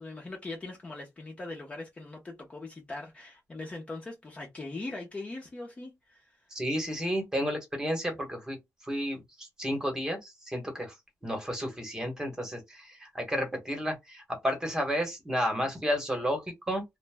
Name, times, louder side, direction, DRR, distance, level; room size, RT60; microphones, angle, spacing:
voice 1, 0.0-6.4, left 2 dB, 20° left, 0.6 m, -41 dB
voice 2, 6.5-8.6 8.8-10.9 11.2-16.8, equal, 10° right, 1.0 m, -32 dB
2.5 x 2.1 x 3.3 m
wide cardioid pair, 165°, 6 cm